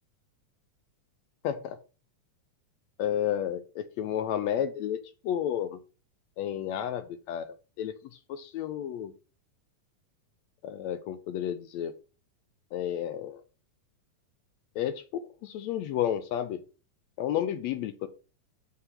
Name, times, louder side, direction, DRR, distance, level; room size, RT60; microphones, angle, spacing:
voice 1, 1.4-1.8 3.0-5.8 6.4-8.0 8.3-9.1 10.6-11.9 12.7-13.4 14.8-16.6 17.2-18.1, left 10 dB, 75° left, 11 dB, 1.7 m, -31 dB
5.7 x 5.6 x 6.0 m, 0.35 s
omnidirectional pair, 3.5 m